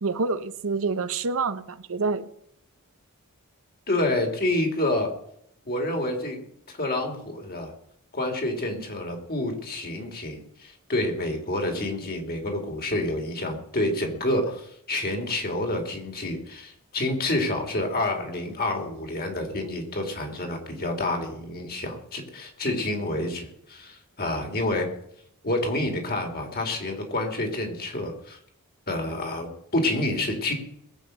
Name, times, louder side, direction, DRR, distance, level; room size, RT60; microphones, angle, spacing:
voice 1, 0.0-2.3, right 4 dB, 65° right, 0.8 m, -27 dB
voice 2, 3.9-5.1 5.7-6.4 6.7-7.7 8.1-24.9 25.4-28.4 28.9-30.5, left 1 dB, 45° left, 3.0 m, -28 dB
20.5 x 8.2 x 6.5 m
head